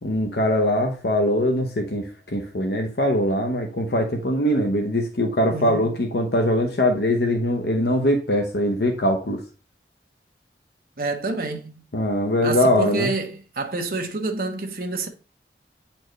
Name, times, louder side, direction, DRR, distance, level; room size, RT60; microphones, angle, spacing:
voice 1, 0.0-9.4 11.9-13.1, left 1 dB, 65° left, 0.9 m, -22 dB
voice 2, 5.5-5.9 11.0-11.8 12.4-15.1, right 3 dB, 55° right, 1.0 m, -28 dB
9.0 x 4.4 x 3.2 m
head